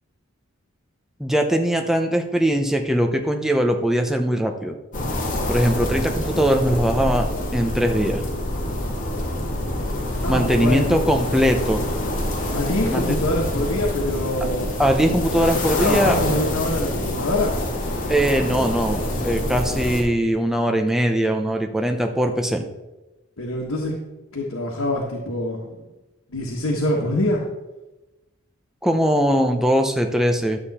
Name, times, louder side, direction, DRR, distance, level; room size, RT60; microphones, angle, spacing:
voice 1, 1.2-4.8 5.5-7.3 7.5-8.2 10.3-11.8 12.9-13.0 14.8-16.2 18.1-22.6 28.8-30.6, equal, ahead, 3 dB, 0.8 m, -21 dB
sound 1, 4.9-20.0, left 1 dB, 40° left, 1.8 m, -26 dB
voice 2, 10.2-11.0 12.5-14.7 15.8-17.5 23.4-23.9 24.3-25.9 26.3-27.4, left 1 dB, 80° left, -2 dB, 1.6 m, -25 dB
12.0 x 7.2 x 4.3 m, 1.1 s
head